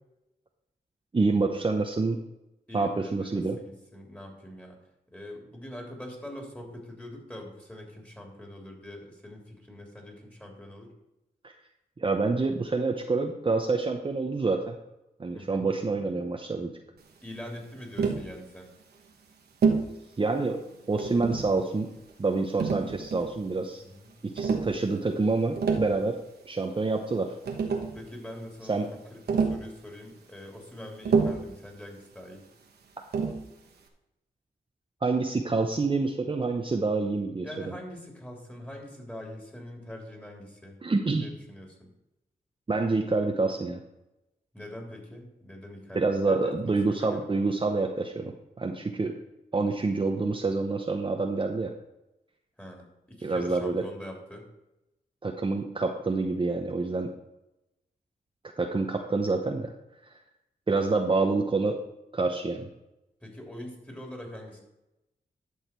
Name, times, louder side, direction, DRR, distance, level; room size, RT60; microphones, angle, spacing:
voice 1, 1.1-2.2 2.7-3.6 12.0-14.8 15.2-16.7 20.2-21.9 22.2-23.8 24.2-26.2 26.5-27.3 28.7-28.9 35.0-37.7 40.8-41.3 42.7-43.8 45.9-48.3 48.6-49.1 49.5-51.7 53.2-53.8 55.2-57.1 58.6-59.7 60.7-61.8 62.1-62.7, right 3 dB, 30° right, 3 dB, 0.8 m, -27 dB
voice 2, 2.7-4.8 5.1-10.9 15.3-15.7 17.2-18.7 23.8-24.1 27.9-32.4 37.4-40.8 41.2-41.9 44.5-47.3 52.6-54.5 63.2-64.6, left 1 dB, 10° left, 0 dB, 3.2 m, -43 dB
Tap, 18.0-18.3 19.6-19.9 21.0-21.5 22.6-23.4 24.4-24.7 25.4-25.9 27.1-27.2 27.5-28.0 29.3-29.7 31.1-31.5 33.1-33.5, right 5 dB, 85° right, 1.2 m, -27 dB
11.0 x 6.5 x 4.5 m, 0.93 s
cardioid pair, 70°, 16 cm